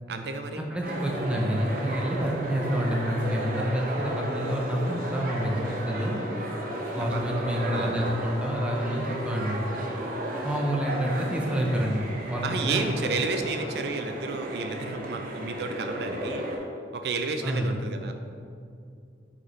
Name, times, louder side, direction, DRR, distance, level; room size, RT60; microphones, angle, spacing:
voice 1, 0.1-0.6 7.0-7.2 7.7-8.0 12.4-16.4 16.9-18.1, right 3 dB, 65° right, 6 dB, 0.4 m, -31 dB
voice 2, 0.7-6.2 6.9-9.9 10.4-13.1 17.4-17.8, equal, 5° right, -1 dB, 0.5 m, -28 dB
sound 1, 0.8-16.6, right 1 dB, 50° right, 0.8 m, -33 dB
5.3 x 4.1 x 4.4 m, 2.4 s
head